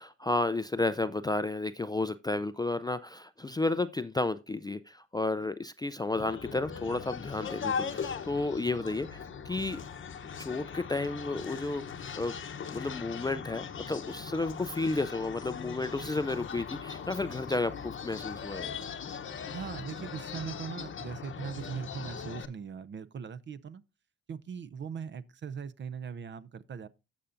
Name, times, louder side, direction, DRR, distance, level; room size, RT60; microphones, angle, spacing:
voice 1, 0.0-9.8 10.4-11.8 12.2-12.3 12.7-18.7, left 2 dB, 15° left, 0.3 m, -32 dB
sound 1, 6.1-22.5, left 6 dB, 40° left, 0.8 m, -39 dB
voice 2, 19.5-23.8 24.3-26.9, right 6 dB, 40° right, 0.5 m, -40 dB
15.5 x 5.7 x 2.5 m
cardioid pair, 90°, 30 cm